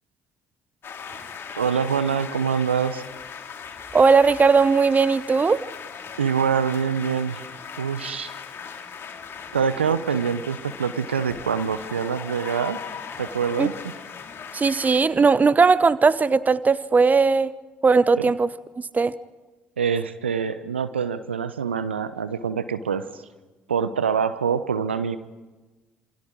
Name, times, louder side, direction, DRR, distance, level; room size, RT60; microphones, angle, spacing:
sound 1, 0.8-15.0, left 6 dB, 40° left, 3.1 m, -38 dB
voice 1, 1.6-3.0 6.2-7.4 7.8-8.3 9.5-12.8 13.2-13.7 18.2-18.3 19.8-23.2 23.7-25.2, right 6 dB, 85° right, 13 dB, 0.9 m, -25 dB
voice 2, 3.9-5.6 13.6-13.7 14.5-17.5 17.8-18.5 18.9-19.1, right 4 dB, 25° right, 17 dB, 1.0 m, -18 dB
28.0 x 26.0 x 4.7 m, 1.2 s
figure-of-eight pair, 50°, 6 cm